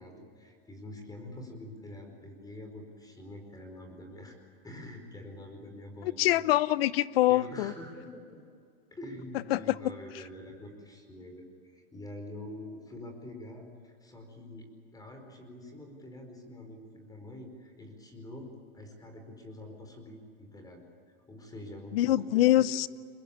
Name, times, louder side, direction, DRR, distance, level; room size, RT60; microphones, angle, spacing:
voice 1, 0.0-4.3 4.6-6.5 7.3-8.4 8.9-22.7, left 1 dB, 10° left, 4.8 m, -46 dB
voice 2, 6.2-7.7 9.5-9.6 21.9-22.9, left 15 dB, 75° left, 0.8 m, -24 dB
23.5 x 20.5 x 8.7 m
hypercardioid pair, 120°, 30 cm